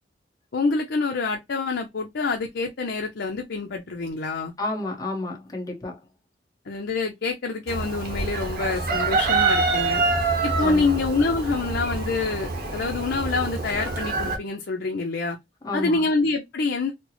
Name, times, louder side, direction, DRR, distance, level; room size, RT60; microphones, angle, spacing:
voice 1, 0.5-4.5 6.7-10.0 10.4-15.4 15.7-16.9, left 3 dB, 65° left, 0.6 m, -26 dB
voice 2, 4.6-6.1 10.6-11.0 15.6-16.1, left 2 dB, 20° left, 1.0 m, -31 dB
Chicken rooster, 7.7-14.4, right 3 dB, 55° right, 0.9 m, -26 dB
4.3 x 2.0 x 2.8 m
head